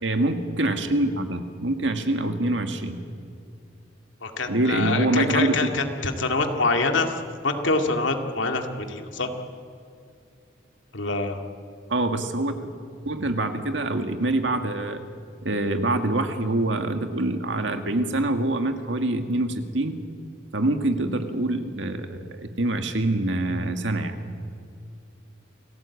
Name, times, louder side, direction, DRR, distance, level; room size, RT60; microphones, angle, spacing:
voice 1, 0.0-3.0 4.5-5.6 11.9-15.0 15.4-20.0 20.5-24.1, right 2 dB, 70° right, 6 dB, 2.0 m, -25 dB
voice 2, 4.2-9.3 10.9-11.4, left 3 dB, 80° left, 4 dB, 2.3 m, -25 dB
28.5 x 18.0 x 8.5 m, 2.4 s
head